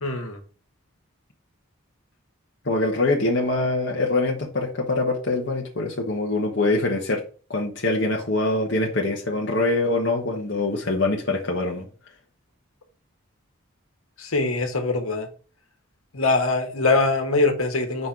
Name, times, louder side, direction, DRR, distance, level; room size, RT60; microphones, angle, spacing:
voice 1, 0.0-0.4 14.2-15.3 16.1-18.1, left 3 dB, 80° left, 1.6 m, -23 dB
voice 2, 2.6-7.2 7.5-11.9, left 2 dB, 55° left, 1.2 m, -24 dB
5.5 x 4.3 x 4.7 m
head